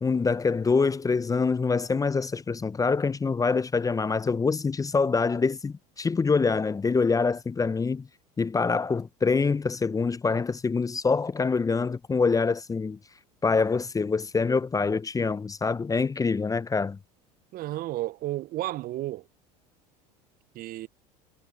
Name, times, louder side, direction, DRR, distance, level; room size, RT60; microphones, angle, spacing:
voice 1, 0.0-8.1 8.4-13.0 13.4-17.0, left 4 dB, 15° left, 0.7 m, -25 dB
voice 2, 17.5-19.3 20.5-20.9, right 16 dB, 45° right, 0.8 m, -32 dB
hypercardioid pair, 75°, 21 cm